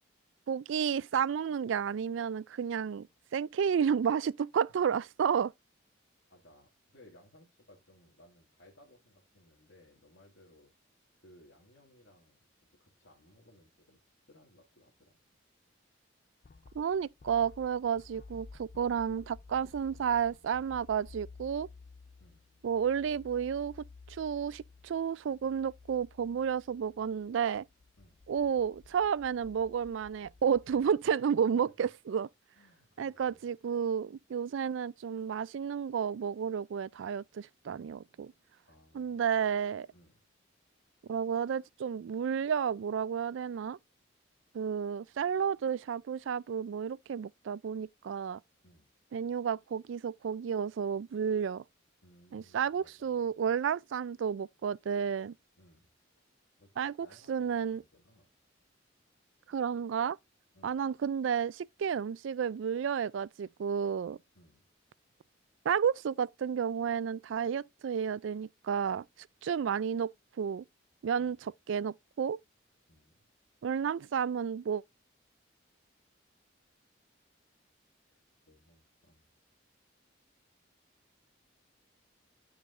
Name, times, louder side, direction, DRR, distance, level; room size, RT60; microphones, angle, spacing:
voice 1, 0.5-3.1 3.3-5.5 16.7-21.7 22.6-23.8 24.1-27.6 28.3-32.3 33.0-38.3 38.9-39.9 41.1-43.8 44.5-48.4 49.1-51.6 52.3-55.3 56.8-56.9 57.3-57.8 59.5-60.2 60.6-64.2 65.6-69.0 69.4-70.6 71.0-72.4 73.6-74.8, right 7 dB, 70° right, 0.3 m, -31 dB
voice 2, 6.3-10.7 11.1-14.0 14.3-15.4 22.2-22.4 28.0-28.2 31.0-31.6 32.5-33.5 38.7-39.5 39.9-40.2 48.6-48.9 52.0-53.3 55.6-55.9 56.6-58.3 60.5-60.8 64.3-64.7 71.2-71.4 72.9-73.3 78.1-79.3, left 1 dB, 70° left, 2.1 m, -62 dB
sound 1, 16.4-30.9, left 4 dB, 45° left, 0.4 m, -54 dB
12.0 x 4.9 x 2.5 m
head